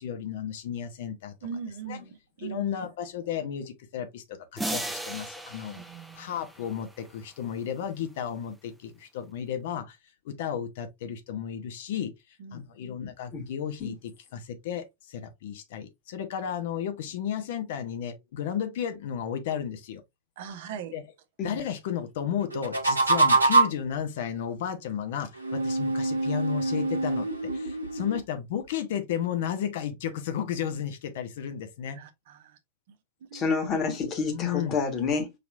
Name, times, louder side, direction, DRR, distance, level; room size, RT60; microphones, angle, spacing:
voice 1, 0.0-1.3 1.8-2.1 2.4-5.8 6.1-10.0 10.2-12.1 12.5-13.9 14.3-20.0 20.9-21.0 21.4-27.3 27.5-32.0 34.3-34.8, left 9 dB, 55° left, 0.7 m, -33 dB
voice 2, 1.4-2.7 5.9-6.3 12.4-12.6 20.4-20.9 31.9-32.5 33.3-33.7, right 6 dB, 55° right, 0.7 m, -40 dB
sound 1, 4.6-7.1, right 1 dB, 5° right, 0.6 m, -36 dB
sound 2, 22.5-23.9 25.4-28.2, right 3 dB, 80° right, 0.9 m, -24 dB
voice 3, 33.3-35.3, left 5 dB, 30° left, 1.3 m, -28 dB
4.9 x 2.9 x 2.4 m
figure-of-eight pair, 90°, 0 cm